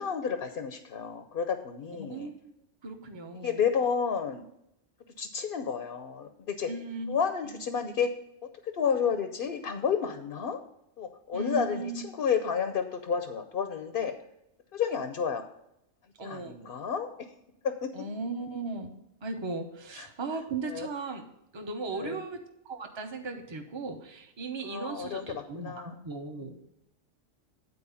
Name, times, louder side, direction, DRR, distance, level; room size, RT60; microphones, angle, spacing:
voice 1, 0.0-2.3 3.4-4.4 5.2-6.7 7.1-8.1 8.6-10.6 11.0-14.1 14.7-15.4 16.2-17.1 17.6-17.9 20.0-20.1 20.6-20.9 22.0-22.2 24.6-26.0 26.4-26.5, left 7 dB, 55° left, 7 dB, 0.8 m, -31 dB
voice 2, 2.0-2.4 2.8-3.6 6.7-7.2 7.4-7.6 11.3-12.0 16.2-16.6 17.9-18.9 19.2-21.2 21.5-25.7 26.0-26.7, right 3 dB, 25° right, 4 dB, 0.9 m, -37 dB
9.7 x 4.5 x 6.9 m, 0.81 s
omnidirectional pair, 1.3 m